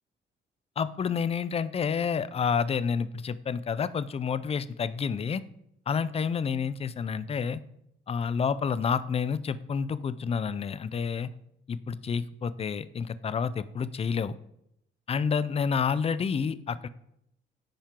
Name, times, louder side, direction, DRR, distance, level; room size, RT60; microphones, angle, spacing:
voice 1, 0.8-5.4 5.9-7.6 8.1-11.3 11.7-14.4 15.1-16.9, left 6 dB, 30° left, 16 dB, 0.4 m, -29 dB
10.5 x 4.3 x 3.7 m, 0.76 s
cardioid pair, 90°, 20 cm